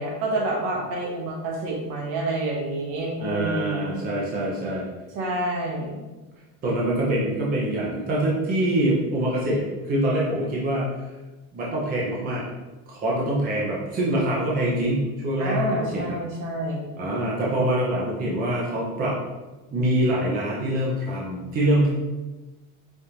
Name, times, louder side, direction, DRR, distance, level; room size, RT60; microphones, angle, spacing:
voice 1, 0.0-4.0 5.1-6.0 15.4-16.9, right 1 dB, 65° right, -2 dB, 1.2 m, -28 dB
voice 2, 3.2-4.9 6.6-10.9 11.5-12.4 12.9-15.6 15.9-16.1 17.0-19.1 19.7-21.9, right 1 dB, 25° right, -5 dB, 0.6 m, -24 dB
5.1 x 2.5 x 2.9 m, 1.1 s
cardioid pair, 165°, 40 cm